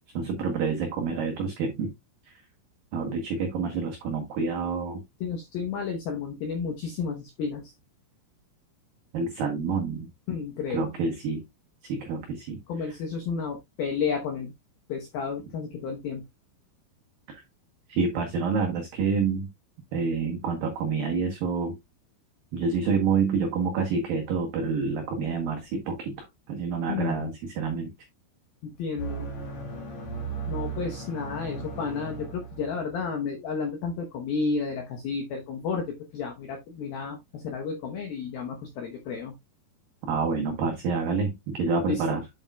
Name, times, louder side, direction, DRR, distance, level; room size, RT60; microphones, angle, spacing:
voice 1, 0.1-1.9 2.3-2.4 2.9-5.0 9.1-10.1 10.7-11.4 11.8-12.6 17.9-19.5 19.9-21.7 22.5-27.9 40.1-42.2, right 5 dB, 90° right, 3 dB, 2.0 m, -28 dB
voice 2, 5.2-7.7 10.3-10.8 12.7-14.5 14.9-16.2 26.9-27.3 28.6-29.3 30.5-39.3 41.9-42.2, left 5 dB, 80° left, 3 dB, 2.1 m, -32 dB
sound 1, 29.0-33.1, right 4 dB, 60° left, 1.9 m, -36 dB
8.7 x 7.4 x 2.3 m, 0.19 s
omnidirectional pair, 5.9 m